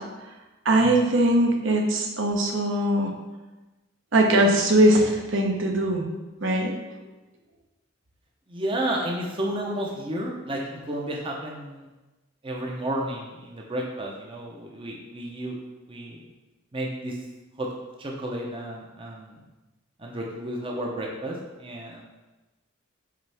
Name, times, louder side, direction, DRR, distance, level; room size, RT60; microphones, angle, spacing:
voice 1, 0.6-3.1 4.1-6.1 6.4-6.7, right 1 dB, 65° right, 1 dB, 1.0 m, -21 dB
voice 2, 8.5-11.8 12.4-15.6 15.9-16.2 16.7-17.2 17.6-17.7 18.0-19.4 20.0-22.0, right 1 dB, 25° right, -1 dB, 0.7 m, -32 dB
8.5 x 3.6 x 3.4 m, 1.1 s
head